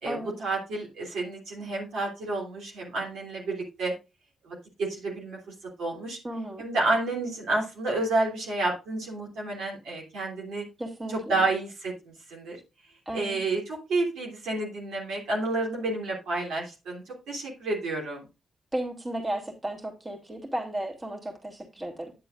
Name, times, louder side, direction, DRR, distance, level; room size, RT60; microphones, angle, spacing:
voice 1, 0.0-3.9 4.4-6.2 6.6-10.6 11.1-12.6 13.1-18.2, right 2 dB, 75° right, -2 dB, 3.1 m, -30 dB
voice 2, 6.2-6.7 10.8-11.5 13.1-13.4 18.7-22.1, right 1 dB, 30° right, 2 dB, 3.0 m, -34 dB
10.5 x 7.5 x 2.6 m, 0.28 s
hypercardioid pair, 45°, 0 cm